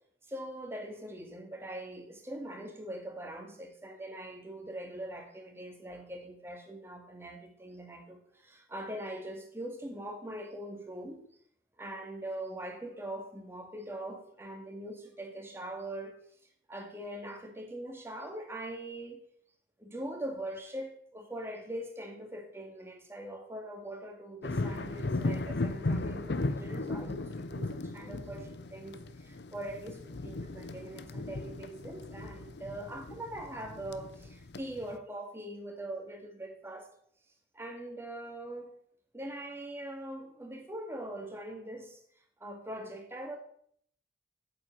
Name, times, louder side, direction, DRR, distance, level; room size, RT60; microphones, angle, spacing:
voice 1, 0.3-11.3 11.8-16.2 16.7-19.2 19.8-36.9 37.5-38.7 39.1-42.0 42.4-43.4, right 1 dB, 15° right, 2.1 m, -42 dB
sound 1, 24.4-35.0, left 2 dB, 70° left, 0.7 m, -36 dB
8.8 x 7.5 x 9.0 m
head